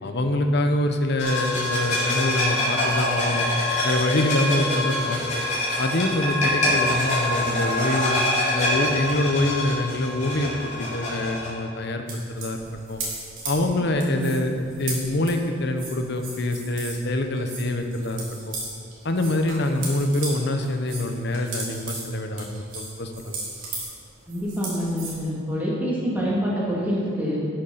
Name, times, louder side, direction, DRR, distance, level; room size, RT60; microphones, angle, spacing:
voice 1, 0.0-3.5 3.8-5.4 5.8-8.2 8.5-12.6 12.9-13.0 13.4-18.6 19.0-23.4, left 1 dB, 60° left, 5 dB, 1.0 m, -25 dB
sound 1, 1.2-11.5, left 1 dB, 35° left, 3.3 m, -25 dB
sound 2, 12.1-17.1 17.3-20.4 20.6-25.2, right 3 dB, 90° right, 3.4 m, -36 dB
voice 2, 24.3-27.4, equal, 10° right, -7 dB, 2.9 m, -26 dB
12.5 x 6.8 x 5.7 m, 2.2 s
head